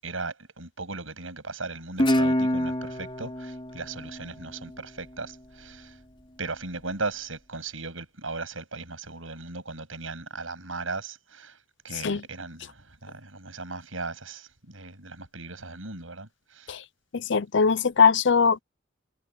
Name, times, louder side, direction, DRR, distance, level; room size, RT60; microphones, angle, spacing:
voice 1, 0.0-5.9 6.4-11.6 11.8-16.8, right 3 dB, 85° right, 7.8 m, -37 dB
Guitar, 2.0-5.2, left 1 dB, 25° left, 5.0 m, -27 dB
voice 2, 17.1-18.6, left 5 dB, 60° left, 0.6 m, -21 dB
head